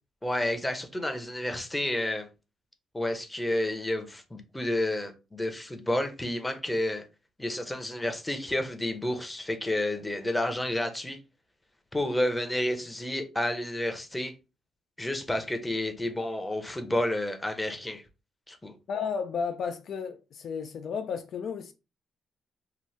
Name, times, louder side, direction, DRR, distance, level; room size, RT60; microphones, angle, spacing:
voice 1, 0.2-2.3 2.9-7.0 7.4-11.2 11.9-14.3 15.0-18.0 18.5-18.8, left 1 dB, 10° left, 0.6 m, -30 dB
voice 2, 18.9-21.7, left 6 dB, 60° left, 0.3 m, -33 dB
2.8 x 2.1 x 3.2 m
cardioid pair, 90°, 0 cm